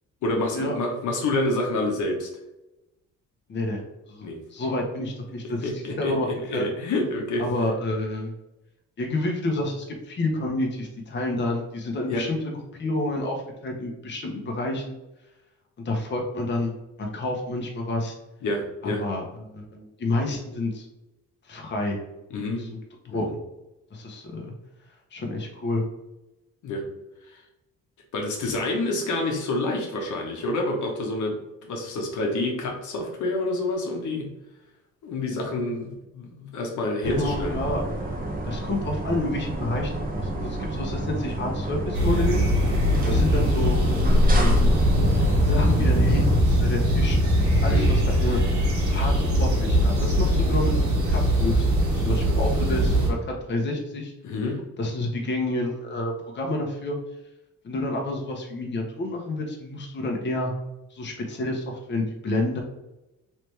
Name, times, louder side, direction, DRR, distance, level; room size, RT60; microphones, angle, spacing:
voice 1, 0.2-2.3 4.2-4.4 5.6-6.1 6.4-7.4 12.1-12.2 18.4-19.0 22.3-22.7 23.1-23.3 26.6-26.8 27.3-27.4 28.1-31.4 31.6-34.3 35.0-37.6 47.7-48.0 54.2-54.6, left 2 dB, 75° left, 1 dB, 1.0 m, -28 dB
voice 2, 3.5-3.8 4.1-6.7 7.4-8.3 9.0-12.4 12.8-15.0 15.8-16.7 17.0-18.1 18.8-20.9 21.5-22.0 22.6-22.7 23.1-23.3 23.9-24.5 25.1-25.8 37.0-37.8 38.5-42.4 43.0-43.8 44.3-44.8 45.4-46.3 46.6-47.2 47.6-48.4 48.9-50.7 51.1-53.2 53.5-54.1 54.8-57.0 57.6-60.5 60.9-62.6, left 2 dB, 35° left, 1 dB, 0.9 m, -29 dB
sound 1, 37.0-46.4, equal, 30° right, 0.8 m, -27 dB
sound 2, 41.9-53.1, equal, 65° right, 1.4 m, -21 dB
3.3 x 3.0 x 3.2 m, 0.97 s
cardioid pair, 90°, 30 cm